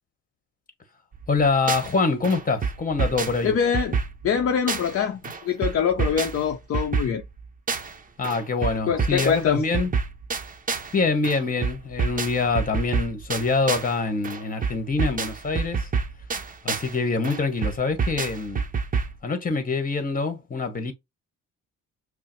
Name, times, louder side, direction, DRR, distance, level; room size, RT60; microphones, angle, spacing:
sound 1, 1.1-2.0 2.2-5.0 5.2-8.0 8.2-11.0 11.2-14.0 14.2-17.0 17.2-19.2, right 5 dB, 30° right, 0.6 m, -28 dB
voice 1, 1.3-3.5 8.2-9.9 10.9-15.9 16.6-18.6 19.2-20.9, left 4 dB, 30° left, 1.3 m, -25 dB
voice 2, 3.4-4.0 4.2-7.2 8.9-9.6, left 7 dB, 50° left, 0.6 m, -24 dB
5.5 x 2.0 x 3.1 m
cardioid pair, 90°, 30 cm